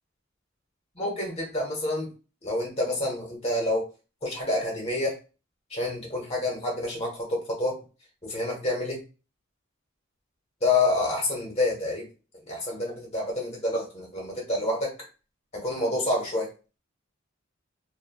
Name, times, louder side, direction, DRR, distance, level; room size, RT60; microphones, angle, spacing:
voice 1, 0.9-2.1 2.4-3.9 4.2-5.2 5.7-7.8 8.2-9.0 10.6-12.0 12.5-14.9 15.5-16.5, left 2 dB, 30° left, -1 dB, 1.2 m, -28 dB
3.1 x 2.3 x 2.3 m, 0.32 s
head